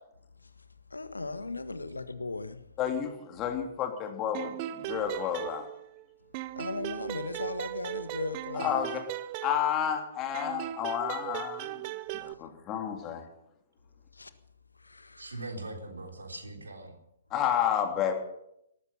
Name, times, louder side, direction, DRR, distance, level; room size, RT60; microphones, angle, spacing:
voice 1, 0.9-2.6 6.6-8.8 14.1-14.3 14.8-15.4 16.3-16.4, left 3 dB, 75° left, 1.4 m, -37 dB
voice 2, 2.8-5.7 8.5-9.0 9.4-13.2 17.3-18.1, left 9 dB, 25° left, 3.0 m, -31 dB
sound 1, 4.3-6.0 6.3-10.0 10.3-12.3, right 15 dB, 35° right, 0.7 m, -38 dB
voice 3, 15.2-17.0, right 2 dB, 70° right, 3.8 m, -41 dB
18.5 x 14.0 x 5.7 m
figure-of-eight pair, 120°, 0 cm